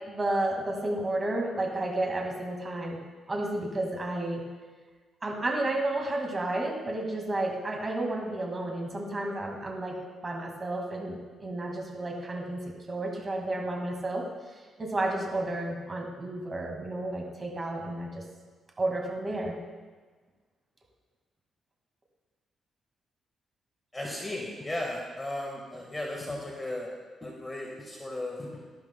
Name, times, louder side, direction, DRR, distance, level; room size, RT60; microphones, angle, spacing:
voice 1, 0.1-3.0 3.3-4.4 5.2-10.0 10.2-14.2 14.8-18.2 18.8-19.6, right 2 dB, 25° right, 0 dB, 1.9 m, -31 dB
voice 2, 23.9-26.9 27.2-28.5, left 1 dB, 15° left, -2 dB, 1.5 m, -35 dB
12.0 x 11.5 x 2.2 m, 1.4 s
cardioid pair, 105°, 0 cm